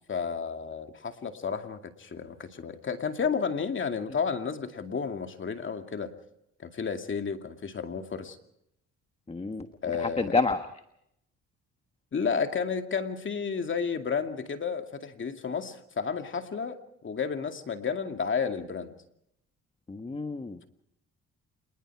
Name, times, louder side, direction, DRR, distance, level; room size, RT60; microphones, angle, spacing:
voice 1, 0.1-6.1 6.6-8.4 9.8-10.4 12.1-18.9, left 6 dB, 40° left, 6 dB, 2.4 m, -32 dB
voice 2, 9.3-9.7 10.0-10.6 19.9-20.7, left 3 dB, 20° left, 8 dB, 1.4 m, -29 dB
27.0 x 20.5 x 4.7 m, 0.76 s
cardioid pair, 90°, 30 cm